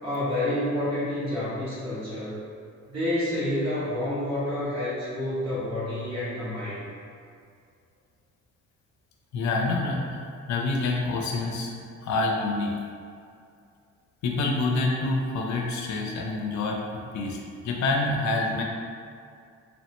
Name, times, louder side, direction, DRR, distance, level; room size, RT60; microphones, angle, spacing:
voice 1, 0.0-2.4 2.9-6.8, left 1 dB, 60° right, -10 dB, 1.5 m, -29 dB
voice 2, 9.3-10.2 10.5-11.7 12.0-12.7 14.2-16.8 17.1-17.4 17.6-18.6, left 3 dB, 70° left, 0 dB, 0.5 m, -26 dB
3.0 x 2.1 x 2.9 m, 2.3 s
cardioid pair, 90°, 30 cm